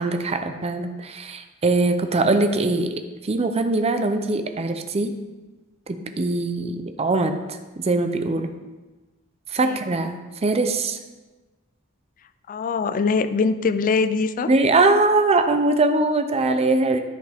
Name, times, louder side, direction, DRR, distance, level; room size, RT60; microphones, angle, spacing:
voice 1, 0.0-5.2 5.9-7.5 7.8-8.5 9.5-11.0 14.5-17.0, right 2 dB, 30° right, 7 dB, 0.5 m, -22 dB
voice 2, 12.5-14.5, left 4 dB, 40° left, 13 dB, 0.3 m, -22 dB
10.0 x 5.7 x 3.5 m, 1.2 s
head